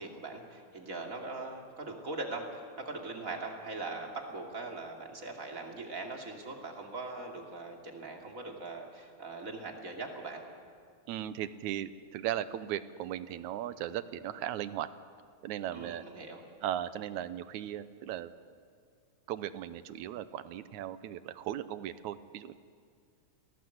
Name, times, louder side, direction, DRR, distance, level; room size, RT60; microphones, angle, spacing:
voice 1, 0.0-10.4 15.7-16.4, right 3 dB, 30° right, 1 dB, 2.9 m, -41 dB
voice 2, 11.1-14.9 15.4-16.0 16.6-18.3 19.3-22.5, right 11 dB, 90° right, 13 dB, 2.2 m, -37 dB
28.5 x 18.0 x 8.0 m, 2.1 s
omnidirectional pair, 3.3 m